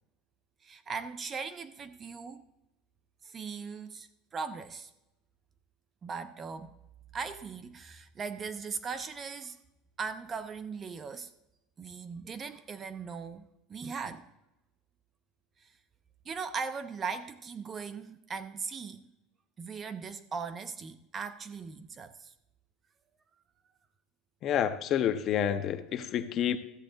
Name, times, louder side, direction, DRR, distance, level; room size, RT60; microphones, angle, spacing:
voice 1, 0.6-2.4 3.2-4.9 6.0-6.7 7.1-9.6 10.0-11.3 11.8-14.3 15.6-15.7 16.3-19.0 19.6-22.3, right 5 dB, 20° right, 0.4 m, -39 dB
voice 2, 24.4-26.6, left 9 dB, 30° left, 0.6 m, -29 dB
13.5 x 8.1 x 3.8 m
cardioid pair, 180°, 0 cm